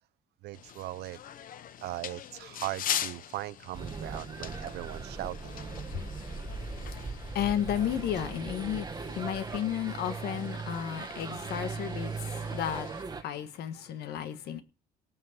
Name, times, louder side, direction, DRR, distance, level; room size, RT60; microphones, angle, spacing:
voice 1, 0.4-1.2 1.8-5.6, right 17 dB, 75° right, 0.6 m, -39 dB
sound 1, 0.5-13.0, left 10 dB, 55° left, 0.8 m, -42 dB
sound 2, 3.7-13.2, right 4 dB, 25° right, 1.5 m, -39 dB
voice 2, 5.8-14.6, left 10 dB, 70° left, 1.5 m, -34 dB
18.5 x 6.5 x 5.2 m
cardioid pair, 110°, 17 cm